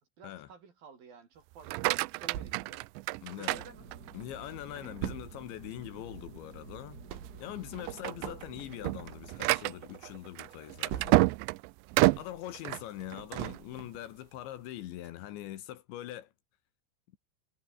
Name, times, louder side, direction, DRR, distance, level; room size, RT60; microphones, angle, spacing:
voice 1, 0.2-2.8 3.3-3.9 4.7-5.0 8.0-8.2 12.1-12.2, right 6 dB, 50° right, 5.0 m, -52 dB
sound 1, 1.5-4.3 4.8-5.3 5.8-5.9 6.3-6.4 7.1-7.4 7.7-13.6, right 23 dB, 90° right, 2.5 m, -30 dB
sound 2, 2.3-3.9 4.3-4.4 4.5-11.6 11.9-14.1 14.5-14.6 15.0-15.1, right 11 dB, 75° right, 4.6 m, -43 dB
voice 2, 3.2-3.6 4.1-7.0 7.4-11.3 12.1-16.3, left 13 dB, 70° left, 3.4 m, -43 dB
Fixed-wing aircraft airplane, 3.5-10.2, right 4 dB, 25° right, 2.3 m, -50 dB
omnidirectional pair, 5.7 m